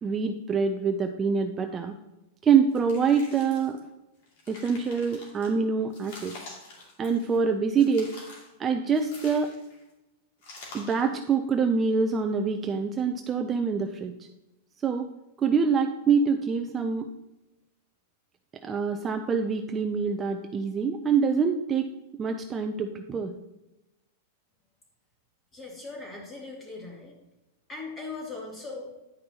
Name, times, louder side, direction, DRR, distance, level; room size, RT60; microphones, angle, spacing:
voice 1, 0.0-1.9 2.4-3.8 4.5-6.3 7.0-8.1 8.6-9.5 10.7-14.1 14.8-15.1 15.4-17.1 18.6-21.9 22.2-23.3, right 5 dB, 20° right, 5 dB, 0.5 m, -25 dB
sound 1, 2.7-3.8 4.2-5.5 5.9-7.4 7.8-8.5 8.9-9.8 10.4-11.1, left 2 dB, 65° left, 2.5 m, -47 dB
voice 2, 25.5-27.1 27.7-28.9, left 3 dB, 20° left, -3 dB, 2.6 m, -39 dB
10.0 x 5.2 x 2.9 m, 0.96 s
supercardioid pair, 135°, 0 cm